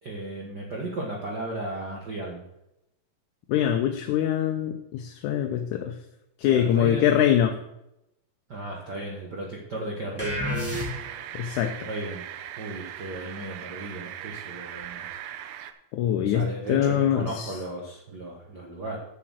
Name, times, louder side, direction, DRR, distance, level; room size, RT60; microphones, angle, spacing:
voice 1, 0.0-2.4 6.4-7.1 8.5-10.7 11.8-12.2 12.6-15.2 16.2-19.0, right 1 dB, 60° right, -1 dB, 1.0 m, -35 dB
voice 2, 3.5-6.0 6.4-7.6 11.3-11.9 15.9-17.5, left 10 dB, 75° left, 5 dB, 2.0 m, -24 dB
sound 1, 10.2-11.3, equal, 5° right, 1.1 m, -30 dB
sound 2, 10.7-15.7, right 11 dB, 80° right, 1.7 m, -39 dB
7.9 x 7.4 x 6.2 m, 0.85 s
omnidirectional pair, 3.9 m